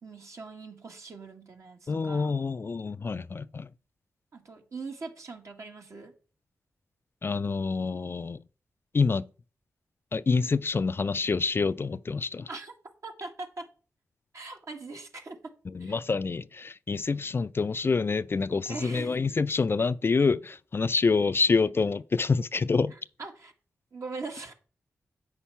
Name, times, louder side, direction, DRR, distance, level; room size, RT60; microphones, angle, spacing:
voice 1, 0.0-2.4 4.3-6.1 12.5-12.7 13.0-13.7 14.3-16.0 18.7-19.2 23.2-23.5 23.9-24.5, right 3 dB, 60° right, 2.0 m, -41 dB
voice 2, 1.9-3.7 7.2-8.4 8.9-9.3 10.1-12.5 15.7-22.9, left 4 dB, 40° left, 0.4 m, -27 dB
8.0 x 5.6 x 5.7 m
supercardioid pair, 45°, 6 cm